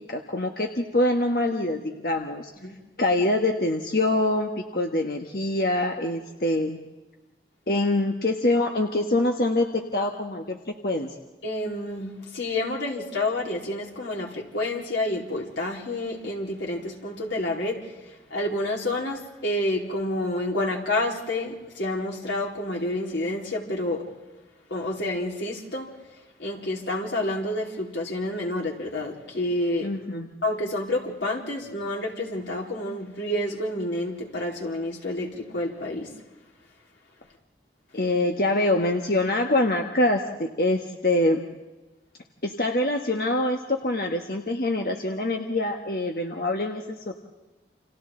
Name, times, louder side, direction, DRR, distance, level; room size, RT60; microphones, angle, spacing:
voice 1, 0.1-2.5 3.0-6.8 7.7-10.6 10.8-11.1 29.8-30.3 37.9-41.4 42.4-47.1, left 1 dB, 55° left, 3 dB, 1.4 m, -25 dB
voice 2, 11.4-24.1 24.7-25.9 26.4-29.9 30.4-36.1, left 1 dB, 90° left, -1 dB, 4.2 m, -29 dB
30.0 x 28.0 x 3.9 m, 1.2 s
head